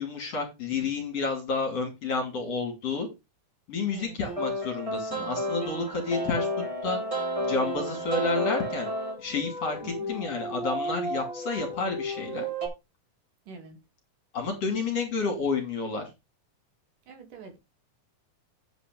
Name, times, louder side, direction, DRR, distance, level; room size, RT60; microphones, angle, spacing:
voice 1, 0.0-3.1 3.7-6.5 6.8-7.0 7.4-8.9 9.2-12.5 14.3-16.1, left 4 dB, 50° left, 3.6 m, -30 dB
voice 2, 3.9-4.2 9.8-10.2 13.5-13.8 17.1-17.6, right 5 dB, 75° right, 3.4 m, -45 dB
sound 1, 4.2-12.7, equal, 10° right, 2.8 m, -32 dB
8.7 x 5.0 x 5.1 m
omnidirectional pair, 3.8 m